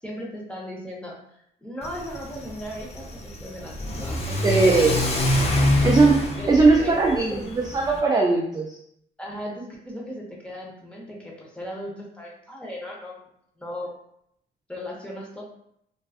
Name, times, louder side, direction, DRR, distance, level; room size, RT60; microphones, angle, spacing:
voice 1, 0.0-4.9 5.5-5.6 6.4-7.0 7.3-7.4 9.2-13.3 13.6-13.9 14.7-15.4, equal, 5° left, -3 dB, 0.8 m, -37 dB
Car / Accelerating revving vroom, 1.8-8.0, left 1 dB, 30° left, 0.5 m, -26 dB
voice 2, 4.4-4.9 5.8-8.8, right 3 dB, 20° right, -1 dB, 0.4 m, -19 dB
2.5 x 2.3 x 2.3 m, 0.74 s
cardioid pair, 90°, 20 cm